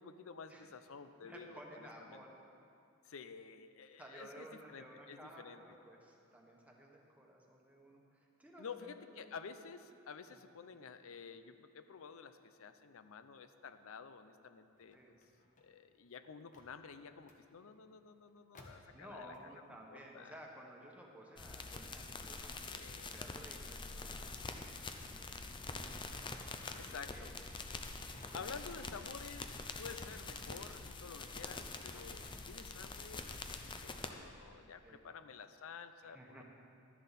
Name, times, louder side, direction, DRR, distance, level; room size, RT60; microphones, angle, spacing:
voice 1, 0.0-2.2 3.0-5.6 8.6-15.2 15.6-19.3 19.9-20.4 22.7-23.2 26.8-27.4 28.3-36.4, left 5 dB, 70° left, 11 dB, 0.6 m, -51 dB
voice 2, 1.2-2.3 4.0-8.0 8.4-9.3 10.3-10.4 14.9-15.1 18.9-27.5 28.3-28.4 28.7-28.8 31.8-32.0 34.8-35.0 36.0-36.4, right 1 dB, 5° right, -2 dB, 1.4 m, -56 dB
sound 1, 14.7-19.7 20.1-24.9 25.2-33.5, left 1 dB, 40° left, 1.3 m, -65 dB
sound 2, 21.4-34.1, left 3 dB, 25° left, 0.6 m, -45 dB
13.0 x 10.5 x 4.2 m, 2.6 s
head